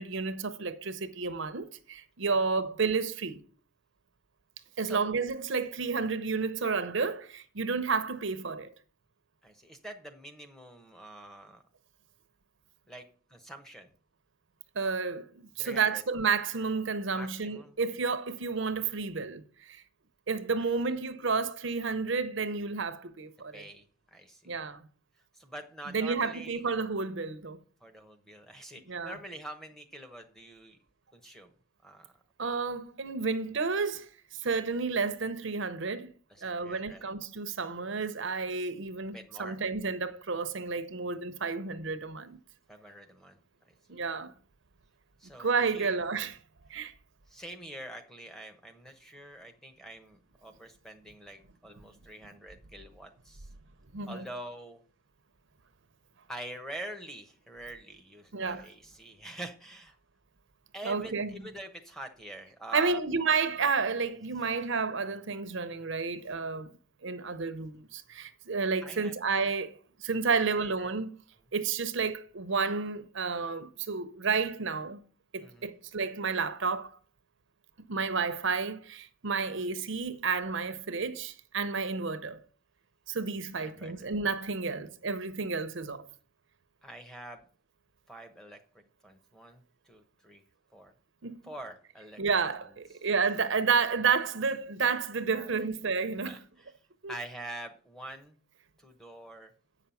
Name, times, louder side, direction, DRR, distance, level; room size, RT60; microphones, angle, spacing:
voice 1, 0.0-3.4 4.8-8.7 14.8-15.3 15.6-19.8 20.3-23.7 24.5-24.8 25.9-27.6 28.9-29.2 32.4-36.1 36.4-42.4 43.9-44.3 45.4-46.4 46.7-46.9 53.9-54.3 58.3-58.7 60.8-61.3 62.7-66.7 67.0-69.7 70.0-71.1 71.5-75.0 75.3-77.0 77.9-82.4 83.1-86.1 91.2-91.4 92.2-96.4 97.0-97.1, right 5 dB, 60° right, 0.7 m, -31 dB
voice 2, 9.4-11.6 12.9-13.0 13.3-13.9 15.6-16.0 17.1-17.7 20.5-20.6 23.5-23.8 24.1-24.4 25.3-26.6 27.8-30.8 31.1-31.5 31.8-32.1 36.3-37.0 39.1-39.6 42.7-43.4 45.2-46.0 47.3-53.5 54.1-54.8 56.3-59.9 60.7-63.0 68.8-69.1 70.3-70.9 75.4-75.7 83.6-84.1 86.8-87.4 88.1-88.6 89.0-90.4 90.7-90.9 91.4-92.2 95.3-95.5 96.2-96.4 97.1-98.4 98.8-99.5, right 1 dB, ahead, 0.9 m, -45 dB
8.3 x 5.8 x 7.0 m
head